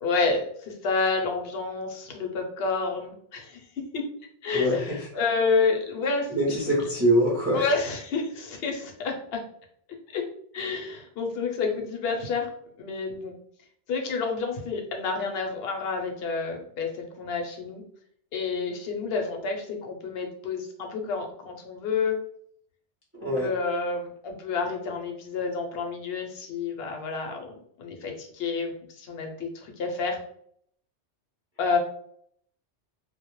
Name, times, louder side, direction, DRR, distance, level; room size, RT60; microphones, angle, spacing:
voice 1, 0.0-4.0 4.4-6.6 7.5-9.4 10.1-10.2 10.5-12.5 12.8-13.3 13.9-17.8 18.3-22.2 23.2-30.2 31.6-31.8, left 4 dB, 65° left, 2 dB, 0.8 m, -29 dB
voice 2, 4.5-5.0 6.3-7.6 23.2-23.5, equal, 20° right, -5 dB, 0.4 m, -23 dB
2.1 x 2.0 x 2.9 m, 0.66 s
omnidirectional pair, 1.2 m